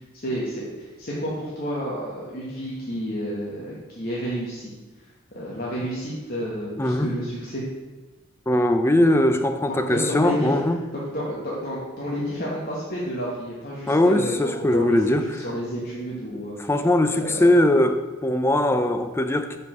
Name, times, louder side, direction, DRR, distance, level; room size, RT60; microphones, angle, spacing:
voice 1, 0.1-4.7 5.3-7.6 9.7-10.6 10.9-16.6 17.2-17.5, equal, 45° left, -6 dB, 1.2 m, -30 dB
voice 2, 6.8-7.1 8.5-10.8 13.9-15.3 16.6-19.6, left 1 dB, 10° left, 8 dB, 0.4 m, -20 dB
5.4 x 4.7 x 6.0 m, 1.2 s
head